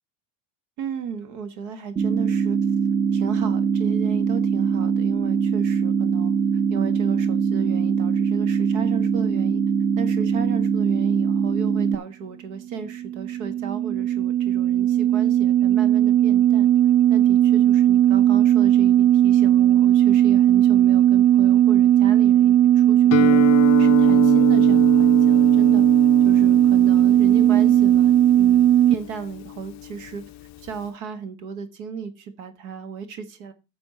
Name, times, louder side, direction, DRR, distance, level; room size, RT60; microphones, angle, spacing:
voice 1, 0.8-2.6 3.1-6.3 6.7-9.6 10.0-16.7 17.1-23.4 23.8-25.8 26.2-33.5, right 6 dB, 75° right, 9 dB, 1.7 m, -34 dB
sound 1, 2.0-12.0, right 6 dB, 10° right, 0.8 m, -22 dB
sound 2, 12.8-28.9, right 11 dB, 55° right, 0.5 m, -17 dB
Guitar, 23.1-30.9, left 15 dB, 40° left, 0.4 m, -28 dB
10.0 x 6.9 x 4.3 m, 0.28 s
supercardioid pair, 105°, 47 cm